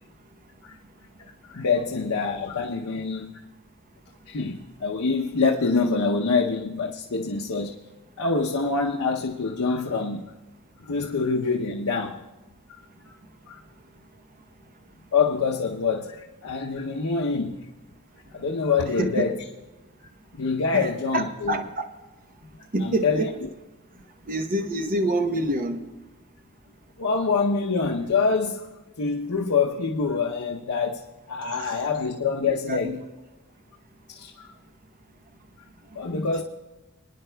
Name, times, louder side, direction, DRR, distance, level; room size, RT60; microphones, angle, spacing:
voice 1, 1.5-3.3 4.3-7.8 8.2-10.2 10.8-12.2 12.7-12.8 13.1-13.2 13.5-13.6 15.1-17.7 18.3-19.4 20.3-21.6 22.8-23.3 27.0-28.7 29.0-32.9 34.1-34.5 35.9-36.4, left 4 dB, 75° left, 0.7 m, -25 dB
voice 2, 20.7-21.8 22.7-23.3 24.3-25.8 32.7-33.0, right 1 dB, 40° right, 0.9 m, -26 dB
25.0 x 9.9 x 2.3 m
head